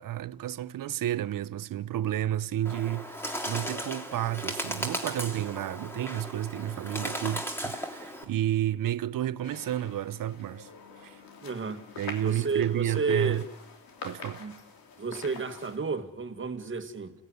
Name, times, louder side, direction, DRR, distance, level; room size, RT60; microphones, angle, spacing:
voice 1, 0.0-10.7 11.0-11.2 12.0-13.4 14.0-14.4, right 12 dB, 65° right, 0.9 m, -31 dB
Bird, 2.6-8.2, equal, 5° left, 3.1 m, -36 dB
sound 1, 9.4-15.8, left 5 dB, 70° left, 3.3 m, -46 dB
voice 2, 11.4-11.8 12.2-13.4 14.4-14.5 15.0-17.1, right 4 dB, 35° right, 1.9 m, -31 dB
29.0 x 17.5 x 9.7 m
cardioid pair, 90°, 36 cm